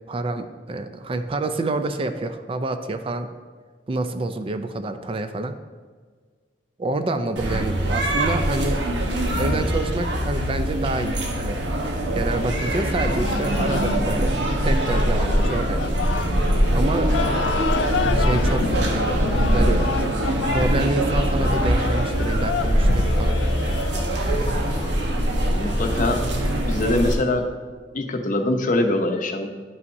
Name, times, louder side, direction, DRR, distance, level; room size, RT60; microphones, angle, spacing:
voice 1, 0.1-3.3 3.9-5.5 6.8-8.8 9.4-11.6 12.1-16.0 16.7-17.2 18.1-19.2 19.5-20.0 20.5-23.4, right 2 dB, 30° right, 8 dB, 0.4 m, -27 dB
sound 1, 7.4-27.1, right 1 dB, 80° right, 1.1 m, -22 dB
sound 2, 13.1-26.1, left 6 dB, 80° left, 0.3 m, -31 dB
voice 2, 25.4-26.3 26.6-27.5 27.9-29.5, left 2 dB, 45° left, 5 dB, 0.7 m, -23 dB
11.0 x 5.6 x 2.6 m, 1.5 s
head